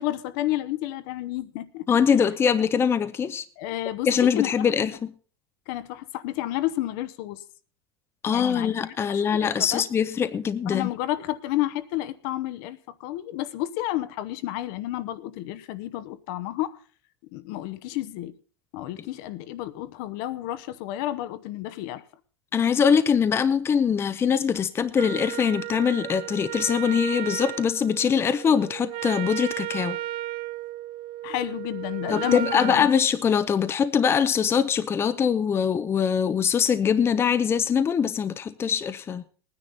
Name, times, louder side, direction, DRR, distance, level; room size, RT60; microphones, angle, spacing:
voice 1, 0.0-1.8 3.6-4.7 5.7-7.4 8.3-9.8 10.7-16.8 17.3-18.3 18.7-22.0 31.2-32.9, left 15 dB, 60° left, 0.9 m, -31 dB
voice 2, 1.9-3.4 4.1-5.1 8.2-10.9 22.5-30.0 32.1-39.2, left 7 dB, 20° left, 0.6 m, -23 dB
Wind instrument woodwind instrument, 24.9-32.9, right 13 dB, 45° right, 0.5 m, -34 dB
19.0 x 9.8 x 4.0 m
supercardioid pair, 130°, 12 cm